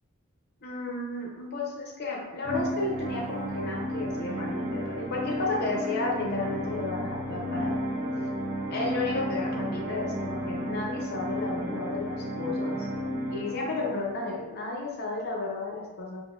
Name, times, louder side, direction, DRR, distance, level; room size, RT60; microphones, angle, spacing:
voice 1, 0.6-7.8 8.7-12.9 13.3-16.2, left 3 dB, 45° left, -2 dB, 0.6 m, -33 dB
sound 1, 2.4-14.4, equal, 45° right, 0.4 m, -33 dB
3.9 x 2.0 x 2.4 m, 1.1 s
head